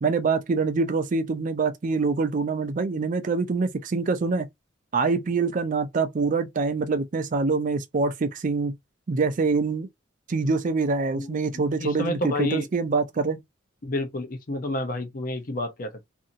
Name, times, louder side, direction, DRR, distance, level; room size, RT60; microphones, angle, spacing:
voice 1, 0.0-4.5 4.9-8.8 9.1-9.9 10.3-13.4, right 4 dB, 40° right, 0.4 m, -25 dB
voice 2, 11.2-12.7 13.8-16.1, left 1 dB, 45° left, 0.7 m, -30 dB
2.7 x 2.6 x 2.6 m
head